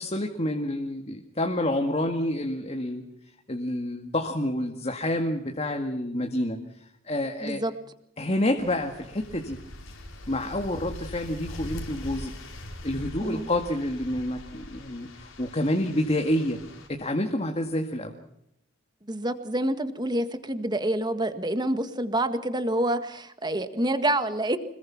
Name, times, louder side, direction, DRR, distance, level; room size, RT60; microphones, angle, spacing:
voice 1, 0.0-3.0 3.5-6.6 7.0-7.6 8.2-9.6 10.3-12.3 12.8-16.6 16.9-18.2, left 1 dB, 30° left, 3 dB, 1.9 m, -28 dB
voice 2, 7.4-7.7 13.2-13.5 19.1-24.6, right 1 dB, 20° right, 10 dB, 1.7 m, -27 dB
sound 1, 8.6-16.9, left 1 dB, 85° left, 5.0 m, -42 dB
26.5 x 21.5 x 5.9 m, 0.77 s
head